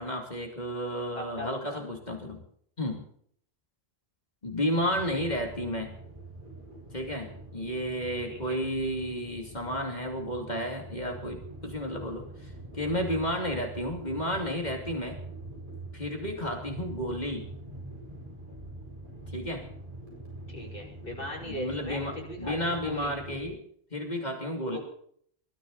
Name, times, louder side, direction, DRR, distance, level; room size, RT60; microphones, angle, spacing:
voice 1, 0.0-2.4 2.8-3.0 4.4-5.9 6.9-15.2 15.9-17.5 19.3-19.6 21.4-23.6 23.9-24.8, equal, 45° left, 2 dB, 3.0 m, -32 dB
voice 2, 1.1-1.8 8.3-8.6 20.5-23.1 24.7-24.8, left 1 dB, 60° left, -2 dB, 6.0 m, -39 dB
sound 1, 4.8-23.5, right 2 dB, 55° right, 7.6 m, -44 dB
22.0 x 13.5 x 4.1 m, 0.62 s
omnidirectional pair, 1.0 m